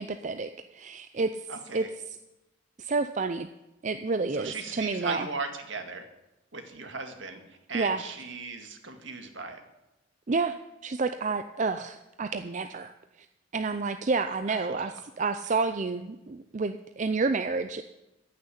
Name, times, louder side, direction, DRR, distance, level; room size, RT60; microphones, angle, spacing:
voice 1, 0.0-1.5 1.7-2.2 2.8-3.5 3.8-5.3 7.7-8.0 10.3-10.6 10.8-12.9 13.5-17.8, right 4 dB, 35° right, 9 dB, 0.5 m, -29 dB
voice 2, 1.5-1.9 4.3-6.0 6.5-7.4 7.7-9.6 14.5-14.9, right 4 dB, 65° right, 6 dB, 1.9 m, -37 dB
15.0 x 6.7 x 9.9 m, 0.97 s
head